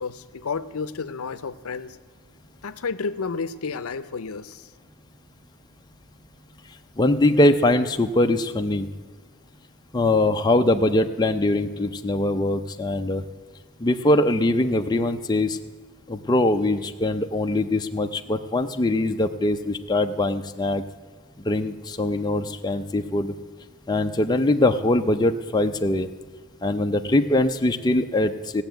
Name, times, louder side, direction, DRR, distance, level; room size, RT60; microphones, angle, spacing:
voice 1, 0.0-2.0 2.6-4.7, left 5 dB, 75° left, 13 dB, 0.6 m, -31 dB
voice 2, 7.0-8.9 9.9-13.2 13.8-15.6 16.1-20.8 21.4-23.3 23.9-26.1 26.6-28.6, left 1 dB, 20° left, 5 dB, 0.5 m, -22 dB
16.5 x 7.0 x 9.1 m, 1.5 s
head